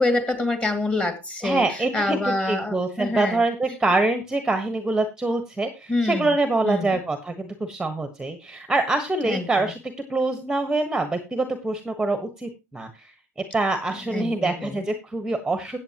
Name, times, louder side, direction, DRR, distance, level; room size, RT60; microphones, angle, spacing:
voice 1, 0.0-3.4 5.9-6.4 6.6-7.0 9.2-9.7 13.9-14.8, left 2 dB, 10° left, 2.2 m, -26 dB
voice 2, 1.4-9.8 10.1-13.1 13.5-15.8, right 2 dB, 5° right, 1.2 m, -25 dB
14.5 x 8.6 x 2.9 m
hypercardioid pair, 115°, 9 cm